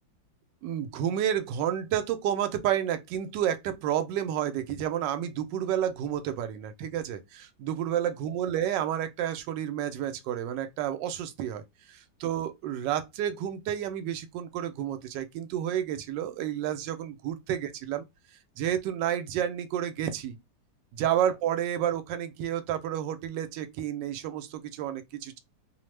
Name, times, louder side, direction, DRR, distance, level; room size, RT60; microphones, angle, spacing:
voice 1, 0.6-11.6 11.9-18.0 18.6-20.4 20.9-25.4, right 10 dB, 75° right, 1.2 m, -30 dB
3.0 x 2.1 x 3.2 m
omnidirectional pair, 2.0 m